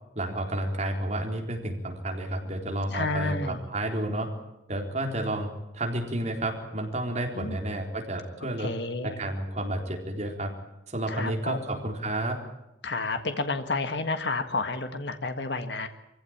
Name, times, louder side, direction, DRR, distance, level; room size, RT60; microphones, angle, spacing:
voice 1, 0.2-4.3 4.7-5.5 5.7-8.7 9.0-10.5 10.9-12.4, right 1 dB, 35° right, 2 dB, 4.0 m, -31 dB
voice 2, 2.9-3.6 7.4-7.6 8.6-9.2 11.1-11.6 12.8-15.9, left 3 dB, 65° left, 8 dB, 1.7 m, -30 dB
24.5 x 16.0 x 8.8 m, 0.93 s
head